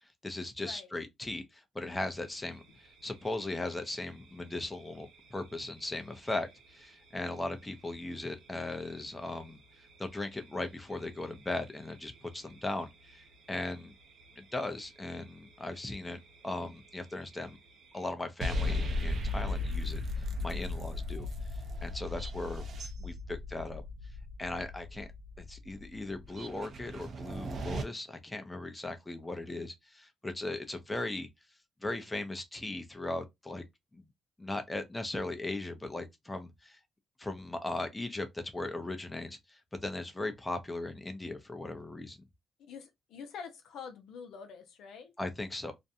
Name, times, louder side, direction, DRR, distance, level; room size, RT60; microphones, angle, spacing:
voice 1, 0.0-13.9 14.4-17.6 17.9-22.6 23.0-23.8 24.4-25.1 25.4-31.3 31.8-33.6 33.9-34.1 34.4-36.8 37.2-42.2 45.2-45.7, left 2 dB, 15° left, 0.5 m, -38 dB
voice 2, 0.6-0.9 42.6-45.1, left 6 dB, 80° left, 0.6 m, -46 dB
sound 1, 1.9-18.2, right 3 dB, 90° right, 0.8 m, -60 dB
sound 2, 18.4-27.8, left 2 dB, 55° right, 0.5 m, -36 dB
2.5 x 2.1 x 2.6 m
cardioid pair, 90°, 0 cm